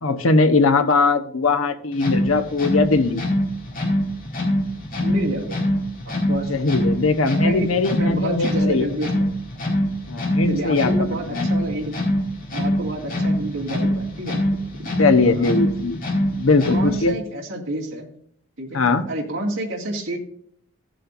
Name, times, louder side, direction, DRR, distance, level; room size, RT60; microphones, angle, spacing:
voice 1, 0.0-3.2 6.5-8.9 10.1-10.9 11.3-11.5 15.0-16.0 16.3-17.2 18.7-19.1, left 3 dB, 85° left, 7 dB, 1.0 m, -20 dB
sound 1, 1.9-17.2, equal, 40° left, 2.4 m, -24 dB
voice 2, 5.0-5.6 6.0-6.5 7.4-9.1 10.5-12.0 12.5-14.4 14.7-15.0 15.2-15.5 16.7-18.1 18.6-20.2, right 1 dB, 70° right, -2 dB, 2.2 m, -29 dB
16.0 x 7.5 x 2.6 m, 0.64 s
head